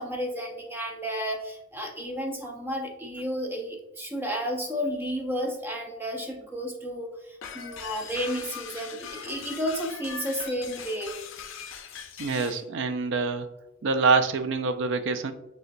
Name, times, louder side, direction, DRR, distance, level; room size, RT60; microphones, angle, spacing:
voice 1, 0.0-11.1, equal, 10° right, 1 dB, 0.6 m, -32 dB
sound 1, 7.4-12.6, left 7 dB, 65° left, 0.5 m, -41 dB
voice 2, 12.2-13.5 13.8-15.3, right 4 dB, 60° right, 9 dB, 0.4 m, -25 dB
6.5 x 2.3 x 2.5 m, 0.91 s
head